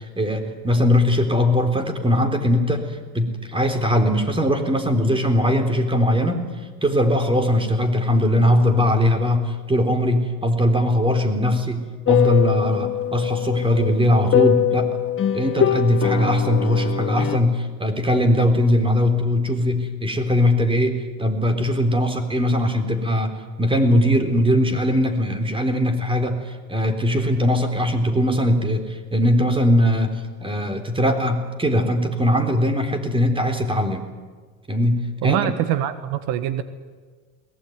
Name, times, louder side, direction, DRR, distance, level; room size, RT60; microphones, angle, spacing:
voice 1, 0.0-6.5 6.8-14.9 15.3-34.0 34.7-35.5, left 1 dB, 15° right, 6 dB, 4.0 m, -20 dB
sound 1, 12.1-17.4, left 10 dB, 35° left, 1.4 m, -22 dB
voice 2, 35.2-36.6, right 11 dB, 75° right, 11 dB, 1.5 m, -24 dB
22.0 x 20.0 x 9.5 m, 1.5 s
supercardioid pair, 100°, 36 cm